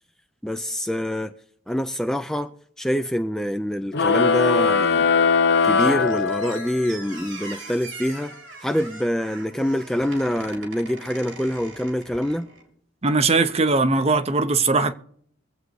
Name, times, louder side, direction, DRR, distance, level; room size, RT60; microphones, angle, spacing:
voice 1, 0.4-1.3 1.7-2.5 2.8-5.1 5.6-8.3 8.6-12.5, equal, 5° left, 0.4 m, -25 dB
sound 1, 3.9-6.9, left 5 dB, 60° left, 0.7 m, -20 dB
Squeak, 5.8-12.7, right 3 dB, 85° right, 3.4 m, -41 dB
voice 2, 13.0-14.9, right 3 dB, 35° right, 0.7 m, -20 dB
23.5 x 8.0 x 3.2 m
head